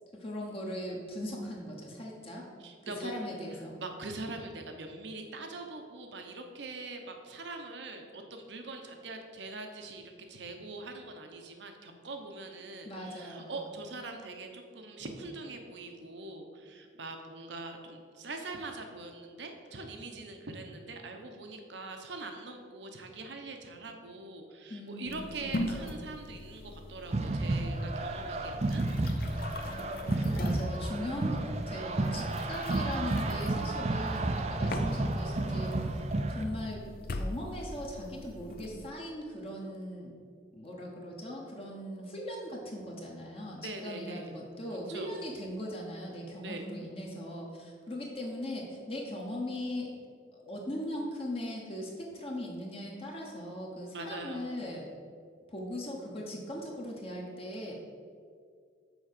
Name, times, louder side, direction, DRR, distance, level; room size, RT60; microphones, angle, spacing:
voice 1, 0.1-2.5 2.8-3.8 12.8-13.6 24.7-26.0 29.7-36.0 36.3-36.8 37.1-40.1 40.5-49.9 50.3-54.9 55.5-57.7, left 1 dB, 30° left, -2 dB, 1.0 m, -39 dB
voice 2, 2.6-3.1 3.8-29.4 43.6-44.3 44.7-45.1 46.4-46.6 53.9-54.5, right 2 dB, 75° right, 4 dB, 1.0 m, -43 dB
sound 1, 25.1-38.9, left 2 dB, 50° left, 0.5 m, -42 dB
sound 2, 27.1-36.4, right 2 dB, 35° right, 0.5 m, -32 dB
6.2 x 4.7 x 6.6 m, 2.1 s
head